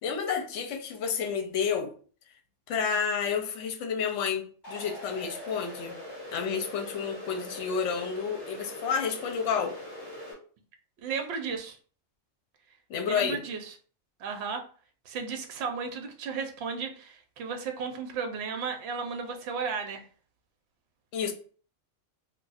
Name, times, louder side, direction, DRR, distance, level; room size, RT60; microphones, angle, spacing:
voice 1, 0.0-1.9 2.7-6.0 6.3-9.7 12.9-13.4 21.1-21.3, left 6 dB, 70° left, 0.9 m, -30 dB
sound 1, 4.6-10.3, left 1 dB, 20° left, 1.3 m, -42 dB
voice 2, 11.0-11.8 13.0-13.7 14.2-14.6 15.1-20.0, right 5 dB, 65° right, 0.8 m, -34 dB
2.4 x 2.4 x 4.0 m
omnidirectional pair, 1.3 m